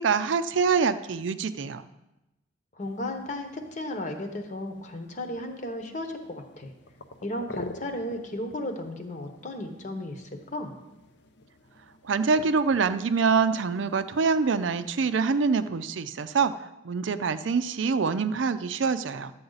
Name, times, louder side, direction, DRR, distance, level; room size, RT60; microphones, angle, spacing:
voice 1, 0.0-1.9 12.0-19.3, right 5 dB, 80° right, 12 dB, 0.5 m, -25 dB
voice 2, 2.7-6.7 7.2-10.7, left 1 dB, 40° left, 5 dB, 1.1 m, -35 dB
sound 1, 2.8-15.7, left 2 dB, 60° left, 0.7 m, -49 dB
12.5 x 7.7 x 4.0 m, 0.97 s
head